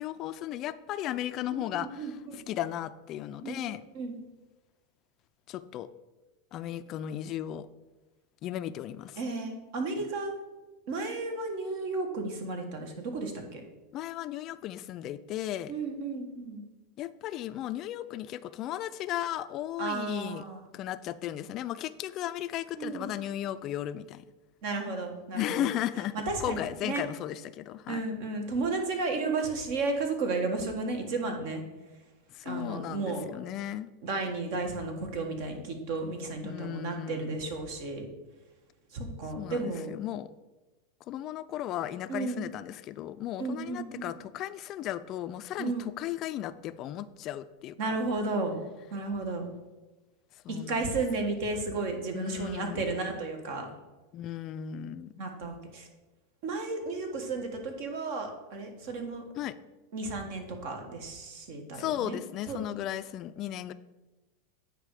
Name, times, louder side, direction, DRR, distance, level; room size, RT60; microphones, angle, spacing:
voice 1, 0.0-2.1 2.3-3.8 5.5-5.9 6.5-7.7 8.4-9.2 13.9-15.7 17.0-20.4 20.7-24.3 25.3-28.0 32.3-33.9 36.4-37.4 39.4-40.3 41.1-48.0 50.4-50.9 52.1-52.9 54.1-55.1 59.4-59.5 61.7-63.7, left 12 dB, 40° left, 13 dB, 0.3 m, -35 dB
voice 2, 1.7-2.1 2.4-2.5 3.4-4.1 9.2-10.3 10.9-13.6 15.7-16.6 19.8-20.7 22.8-23.1 24.6-25.7 26.1-27.0 27.9-31.6 32.4-33.3 34.0-38.1 38.9-39.9 42.1-42.5 43.4-44.1 45.6-45.9 47.8-48.6 48.9-49.5 50.5-53.7 55.2-55.9 56.4-59.2 59.9-62.2 62.5-62.8, right 3 dB, 60° right, 4 dB, 1.7 m, -33 dB
9.1 x 5.1 x 4.9 m, 1.1 s
supercardioid pair, 130°, 0 cm